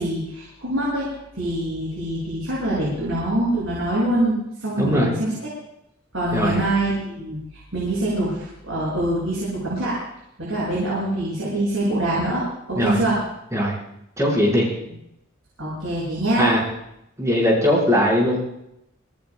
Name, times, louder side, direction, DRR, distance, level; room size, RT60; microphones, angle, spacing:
voice 1, 0.0-5.3 6.1-7.4 7.7-10.0 10.4-13.2 15.6-16.5, right 1 dB, 70° right, -7 dB, 7.5 m, -24 dB
voice 2, 4.8-5.1 6.3-6.6 12.8-13.0 13.5-13.7 14.2-14.7 16.4-16.6 17.2-18.4, equal, 15° right, -5 dB, 6.0 m, -19 dB
25.5 x 18.5 x 2.5 m, 0.83 s
head